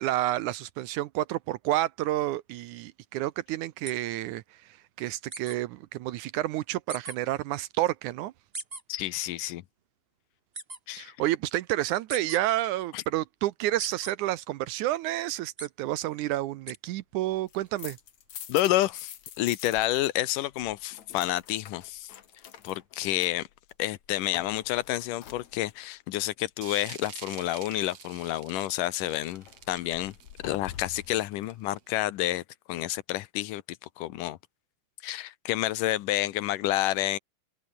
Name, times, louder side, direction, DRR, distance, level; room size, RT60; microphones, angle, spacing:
voice 1, 0.0-4.4 5.0-8.3 11.0-18.0, right 15 dB, 75° right, 2.0 m, -30 dB
sound 1, 3.8-3.9 5.3-5.6 6.9-7.1 8.5-8.8 10.5-10.8 12.1-12.4 13.8-14.1 15.6-15.7 16.7-16.8, right 2 dB, 15° right, 3.5 m, -38 dB
voice 2, 8.9-9.6 10.9-11.1 12.9-13.0 18.5-22.1 22.6-23.5 23.8-30.1 30.4-32.4 32.7-33.6 34.0-34.4 35.0-37.2, left 15 dB, 80° left, 2.5 m, -29 dB
sound 2, 17.3-20.1 20.4-25.9 29.0-31.2, left 10 dB, 60° left, 2.9 m, -47 dB
sound 3, 26.6-31.9, right 10 dB, 55° right, 2.4 m, -47 dB
open air
omnidirectional pair, 3.8 m